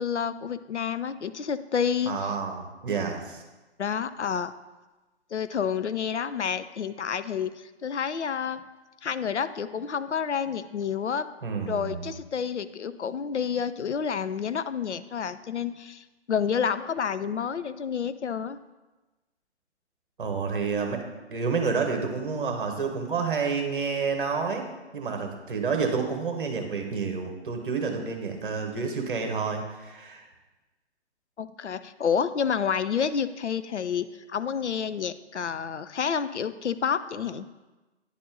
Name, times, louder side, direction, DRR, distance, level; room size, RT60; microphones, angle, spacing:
voice 1, 0.0-2.4 3.8-4.5 5.3-7.5 7.8-8.6 9.0-11.3 11.7-18.6 31.4-37.5, left 7 dB, 80° left, 13 dB, 0.5 m, -29 dB
voice 2, 2.1-3.4 11.4-12.1 20.2-21.0 21.3-24.7 24.9-30.2, right 5 dB, 50° right, 4 dB, 1.2 m, -29 dB
9.9 x 4.1 x 3.8 m, 1.2 s
figure-of-eight pair, 135°, 34 cm